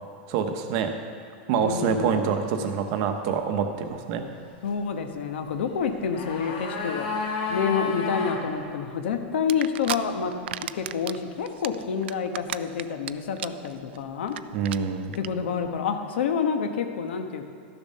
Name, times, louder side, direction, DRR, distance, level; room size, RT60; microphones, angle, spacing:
voice 1, 0.3-0.9 1.5-4.2 14.5-15.1, right 7 dB, 40° right, 6 dB, 0.9 m, -26 dB
voice 2, 1.5-2.4 4.6-7.2 7.5-10.3 10.6-14.4 15.1-17.5, left 6 dB, 75° left, 6 dB, 1.1 m, -28 dB
sound 1, 5.8-8.4 8.7-8.8, left 4 dB, 55° left, 2.2 m, -31 dB
En Drink Crushed, 9.5-10.0 10.3-11.2 11.5-13.1 13.4-13.7 13.9-14.0 14.3-14.4 14.6-14.8 15.1-15.3, right 13 dB, 70° right, 0.4 m, -32 dB
13.0 x 7.0 x 5.6 m, 2.2 s
supercardioid pair, 170°, 6 cm